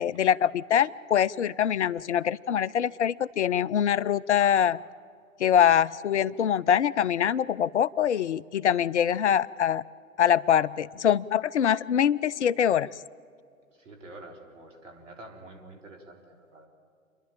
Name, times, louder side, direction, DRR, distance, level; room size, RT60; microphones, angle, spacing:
voice 1, 0.0-4.8 5.4-9.8 10.2-12.9, left 9 dB, 60° left, 21 dB, 0.5 m, -24 dB
voice 2, 13.7-16.7, right 2 dB, 65° right, 2 dB, 4.0 m, -47 dB
28.5 x 11.5 x 8.9 m, 2.3 s
figure-of-eight pair, 115°, 41 cm